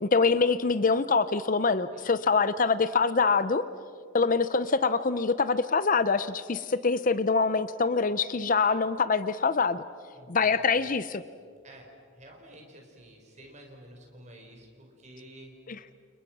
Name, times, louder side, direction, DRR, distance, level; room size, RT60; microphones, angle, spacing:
voice 1, 0.0-3.6 4.1-9.8 10.3-11.2 15.7-15.8, left 4 dB, 35° left, 14 dB, 0.6 m, -25 dB
voice 2, 1.9-2.3 10.1-10.9 11.6-15.5, right 1 dB, 30° right, 1 dB, 5.1 m, -51 dB
30.0 x 29.0 x 6.1 m, 2.2 s
head